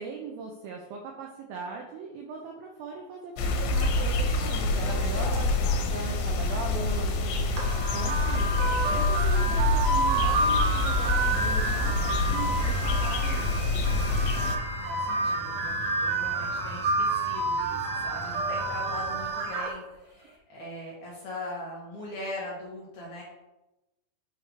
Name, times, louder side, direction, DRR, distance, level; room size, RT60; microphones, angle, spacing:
voice 1, 0.0-7.5 7.9-8.5 8.9-13.5 15.2-15.3, right 5 dB, 90° right, 1 dB, 2.1 m, -39 dB
sound 1, 3.4-14.6, left 2 dB, 90° left, 3.1 m, -26 dB
sound 2, 7.6-19.7, right 2 dB, 70° right, 2.3 m, -29 dB
sound 3, 12.5-19.3, equal, 45° left, 0.9 m, -43 dB
voice 2, 14.8-23.2, left 1 dB, 65° left, -5 dB, 2.0 m, -40 dB
8.6 x 3.2 x 5.0 m, 1.0 s
omnidirectional pair, 5.1 m